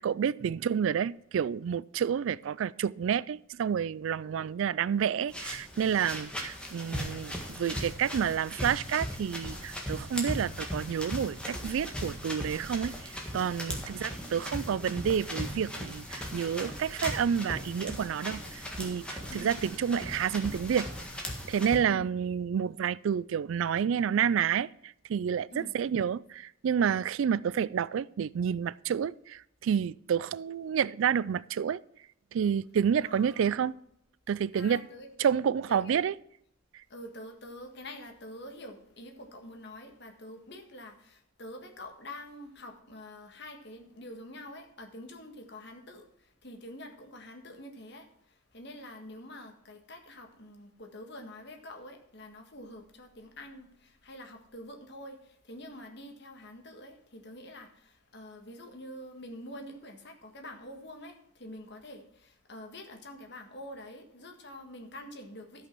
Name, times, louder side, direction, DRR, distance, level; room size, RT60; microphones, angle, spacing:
voice 1, 0.0-20.9 21.5-31.8 32.3-33.7 34.3-34.8 35.2-36.1, right 8 dB, 70° right, 0.3 m, -29 dB
sound 1, 5.3-21.8, equal, 5° left, 1.6 m, -38 dB
voice 2, 13.9-14.5 19.3-19.5 21.9-22.1 25.5-25.7 33.0-33.7 34.5-35.3 35.7-36.0 36.9-65.7, left 1 dB, 55° left, 1.7 m, -46 dB
13.0 x 5.7 x 6.1 m
head